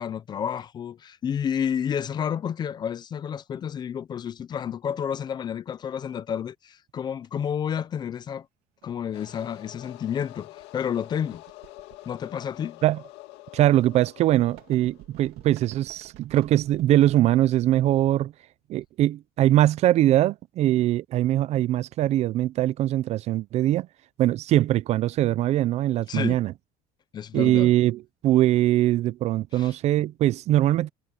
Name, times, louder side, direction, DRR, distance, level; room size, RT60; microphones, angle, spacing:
voice 1, 0.0-8.5 8.8-11.4 12.1-12.8 26.1-26.4 27.1-27.7 29.5-29.7, left 8 dB, 25° left, 0.4 m, -30 dB
sound 1, 7.2-7.3 8.8-9.0 9.3-9.5 10.1-10.3 10.6-12.7 13.8-17.2, right 15 dB, 65° right, 2.6 m, -49 dB
sound 2, 9.1-15.8, left 19 dB, 90° left, 2.0 m, -47 dB
voice 2, 13.5-18.3 18.7-23.9 24.2-26.5 27.3-30.9, right 14 dB, 40° right, 0.4 m, -22 dB
cardioid pair, 180°, 17 cm